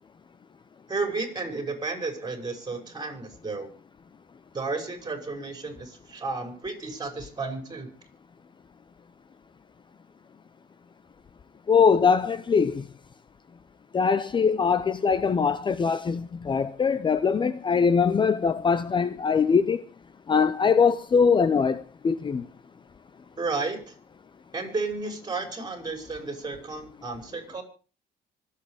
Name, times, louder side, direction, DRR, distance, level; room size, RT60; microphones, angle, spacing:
voice 1, 0.9-3.7 4.5-7.9 23.4-24.0 24.5-27.6, right 3 dB, 25° right, 5.9 m, -32 dB
voice 2, 11.7-12.8 13.9-19.8 20.3-22.4, left 6 dB, 30° left, 0.7 m, -22 dB
25.0 x 8.4 x 4.9 m
cardioid pair, 110°, 17 cm